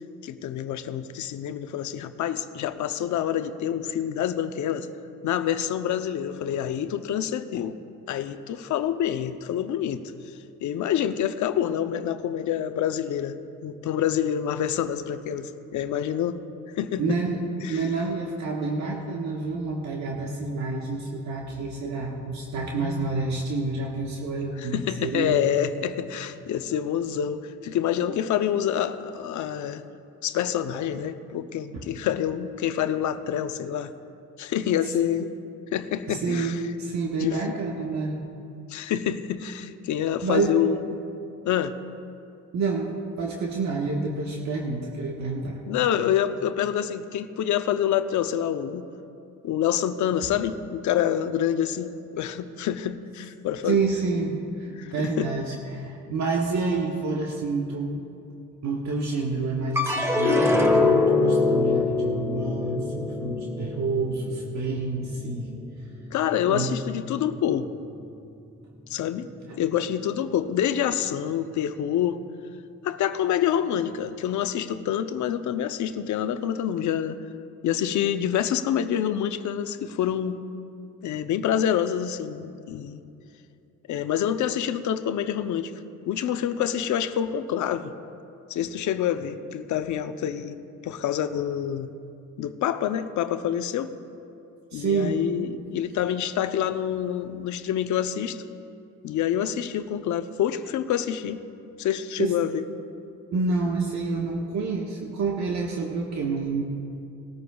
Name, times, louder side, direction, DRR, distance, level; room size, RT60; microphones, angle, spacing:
voice 1, 0.2-4.9 5.2-7.8 8.1-10.0 10.3-10.4 10.6-13.4 13.6-16.4 16.8-17.2 17.6-17.9 24.6-29.8 30.2-33.9 34.4-35.3 35.7-36.6 37.2-37.5 38.7-41.0 41.4-41.8 45.7-48.9 49.4-53.8 54.8-55.3 66.1-67.7 68.9-69.3 69.6-72.2 72.8-77.2 77.6-80.4 81.0-83.0 83.9-85.7 86.1-87.9 88.5-90.6 90.8-91.9 92.4-93.9 94.7-98.4 99.0-101.4 101.8-102.7, left 10 dB, 75° left, 10 dB, 0.7 m, -27 dB
voice 2, 17.0-17.4 17.7-25.4 28.0-28.2 31.7-31.8 36.1-38.2 40.2-40.6 42.5-45.6 53.6-58.0 58.6-65.5 66.5-66.7 69.5-69.6 94.7-95.2 102.2-102.3 103.3-106.6, right 3 dB, 65° right, -2 dB, 1.4 m, -28 dB
sound 1, 59.8-66.2 66.6-67.3, left 3 dB, 10° right, 1.3 m, -24 dB
19.5 x 13.5 x 2.3 m, 2.6 s
cardioid pair, 90°, 30 cm